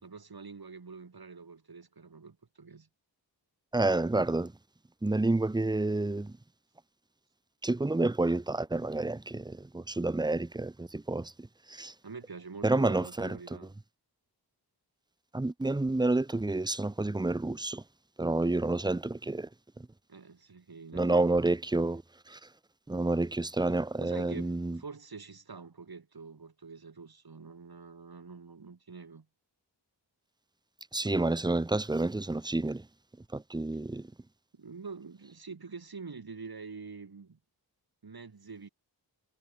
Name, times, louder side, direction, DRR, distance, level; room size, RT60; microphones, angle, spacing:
voice 1, 0.0-2.9 12.0-13.7 20.1-21.3 24.0-29.3 34.5-37.4 38.0-38.7, right 4 dB, 60° right, 3.2 m, -46 dB
voice 2, 3.7-4.5 5.0-6.4 7.6-11.9 12.6-13.4 15.3-17.8 18.2-19.5 19.8-19.9 20.9-22.0 22.3-22.4 22.9-24.8 30.9-32.9 33.3-34.1, right 2 dB, 10° right, 0.6 m, -29 dB
wide cardioid pair, 90°, 41 cm